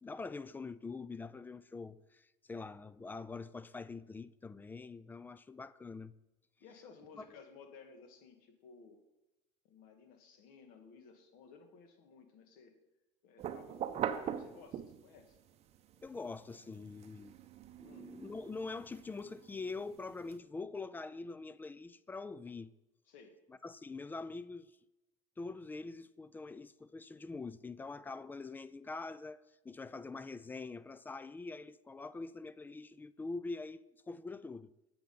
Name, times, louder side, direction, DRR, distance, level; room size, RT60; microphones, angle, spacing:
voice 1, 0.0-6.1 7.2-7.3 16.0-17.4 17.8-22.7 23.5-24.7 25.4-34.7, left 3 dB, 10° left, 0.3 m, -44 dB
voice 2, 6.6-9.0 9.6-12.8 13.2-15.4 17.8-18.1 23.1-23.4, left 5 dB, 65° left, 1.7 m, -57 dB
sound 1, 13.4-15.2 15.7-20.3, right 9 dB, 40° right, 0.7 m, -42 dB
7.8 x 7.3 x 5.3 m
supercardioid pair, 115°, 16 cm